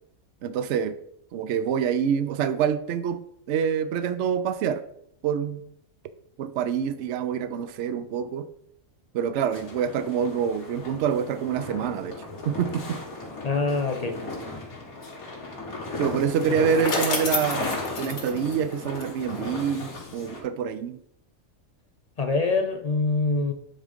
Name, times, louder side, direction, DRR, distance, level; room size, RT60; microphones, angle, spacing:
voice 1, 0.4-1.0 1.3-4.8 5.2-5.6 6.4-8.5 9.1-13.0 16.0-21.0, right 8 dB, 65° right, 0.9 m, -26 dB
sound 1, 9.5-20.4, left 2 dB, 85° left, 2.3 m, -36 dB
voice 2, 13.4-14.2 16.6-16.7 22.2-23.5, left 3 dB, 55° left, 0.4 m, -24 dB
Bicycle, 16.2-19.5, left 3 dB, 70° left, 1.8 m, -31 dB
9.1 x 3.7 x 5.1 m
omnidirectional pair, 1.5 m